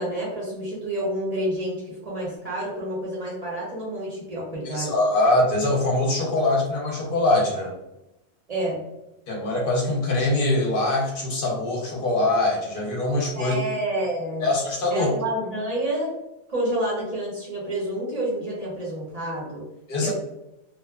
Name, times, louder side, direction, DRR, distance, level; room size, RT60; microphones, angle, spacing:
voice 1, 0.0-4.9 8.5-8.8 13.4-14.5 14.9-16.1 16.5-19.6 20.0-20.1, right 1 dB, 40° right, -6 dB, 0.7 m, -29 dB
voice 2, 4.6-7.7 9.3-13.6 14.4-15.2 19.9-20.1, left 2 dB, 55° left, -2 dB, 0.8 m, -23 dB
2.6 x 2.1 x 2.3 m, 0.92 s
omnidirectional pair, 1.2 m